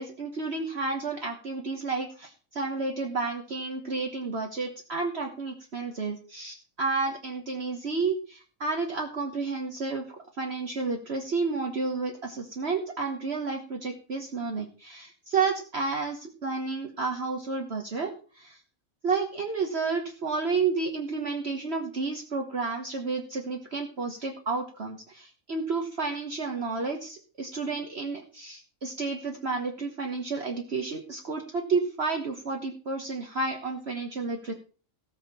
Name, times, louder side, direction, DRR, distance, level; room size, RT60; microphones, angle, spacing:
voice 1, 0.0-18.6 19.0-34.5, right 4 dB, 50° right, 2 dB, 1.6 m, -31 dB
17.0 x 6.6 x 5.6 m, 0.38 s
omnidirectional pair, 1.4 m